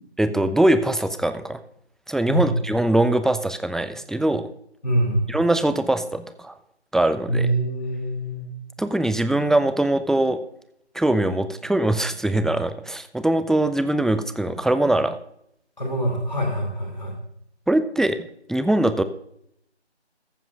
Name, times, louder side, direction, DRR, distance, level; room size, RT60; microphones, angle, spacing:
voice 1, 0.2-1.6 2.1-4.5 5.3-6.5 6.9-7.5 8.8-10.4 10.9-15.2 17.7-19.0, right 1 dB, ahead, 11 dB, 0.3 m, -22 dB
voice 2, 4.8-5.3 7.3-8.5 15.8-17.1, right 1 dB, 40° left, 2 dB, 2.5 m, -24 dB
14.5 x 10.5 x 2.4 m, 0.73 s
figure-of-eight pair, 170°, 34 cm